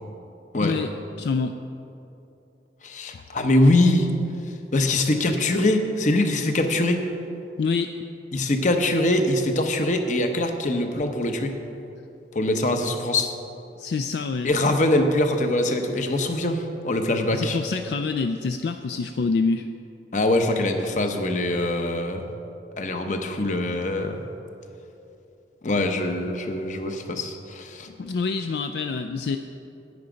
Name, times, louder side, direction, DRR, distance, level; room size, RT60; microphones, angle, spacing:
voice 1, 0.6-0.9 1.1-1.6 7.6-7.9 13.8-14.5 17.3-19.7 28.0-29.4, left 4 dB, 65° left, 7 dB, 0.3 m, -26 dB
voice 2, 2.8-4.1 4.7-7.1 8.3-11.6 12.3-13.3 14.4-17.6 20.1-22.2 22.8-24.2 25.6-27.9, left 1 dB, 45° left, 6 dB, 0.8 m, -23 dB
9.8 x 9.5 x 5.1 m, 2.8 s
head